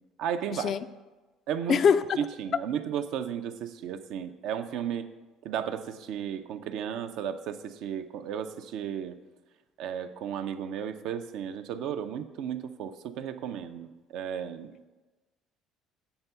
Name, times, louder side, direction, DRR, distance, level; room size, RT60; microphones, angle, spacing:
voice 1, 0.2-0.7 1.5-1.8 2.2-5.1 5.4-9.2 9.8-14.7, right 8 dB, 70° right, 0.4 m, -34 dB
voice 2, 1.7-2.0, left 6 dB, 55° left, 0.3 m, -22 dB
7.9 x 3.6 x 5.4 m
hypercardioid pair, 65°, 0 cm